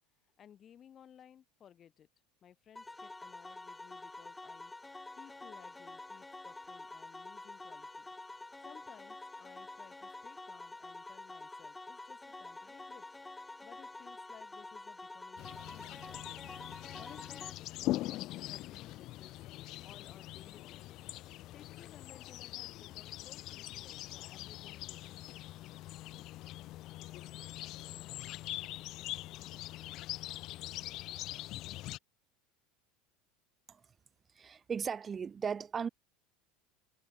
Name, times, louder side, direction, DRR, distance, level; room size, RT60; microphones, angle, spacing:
voice 1, 0.4-2.1 2.4-8.1 8.6-13.2 13.6-16.5 17.0-19.3 19.7-21.0 21.5-25.3, left 9 dB, 35° left, 4.4 m, -59 dB
sound 1, 2.8-17.5, left 2 dB, 10° left, 2.5 m, -48 dB
sound 2, 15.4-32.0, left 16 dB, 55° left, 0.4 m, -43 dB
voice 2, 34.4-35.9, right 6 dB, 25° right, 0.8 m, -37 dB
supercardioid pair, 110°, 0 cm